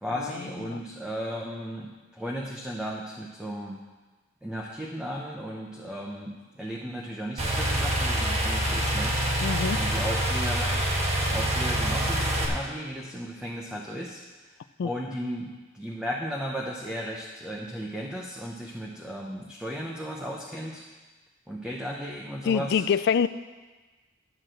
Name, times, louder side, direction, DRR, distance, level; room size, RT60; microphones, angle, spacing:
voice 1, 0.0-3.8 4.4-9.2 9.7-10.8 11.3-14.2 14.8-20.8 21.5-22.8, equal, 5° right, -2 dB, 0.8 m, -35 dB
sound 1, 7.4-12.5, right 1 dB, 35° right, 1.5 m, -26 dB
voice 2, 9.4-9.8 14.8-14.9 22.5-23.3, left 7 dB, 55° left, 15 dB, 0.3 m, -25 dB
12.0 x 4.8 x 7.6 m, 1.3 s
head